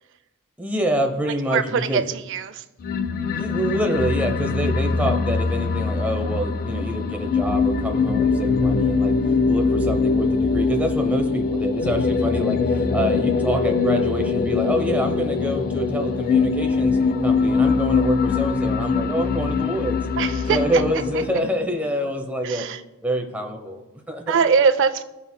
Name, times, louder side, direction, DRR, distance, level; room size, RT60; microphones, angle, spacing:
voice 1, 0.6-2.0 3.3-9.2 9.5-20.0 20.5-22.7 23.0-24.4, equal, 10° right, 3 dB, 0.8 m, -26 dB
voice 2, 1.5-2.6 20.2-20.8 21.1-21.2 22.4-22.8 24.3-25.0, right 6 dB, 60° right, 13 dB, 0.4 m, -22 dB
sound 1, 2.8-21.4, left 4 dB, 45° left, 0.4 m, -22 dB
14.5 x 5.5 x 2.2 m, 1.0 s
head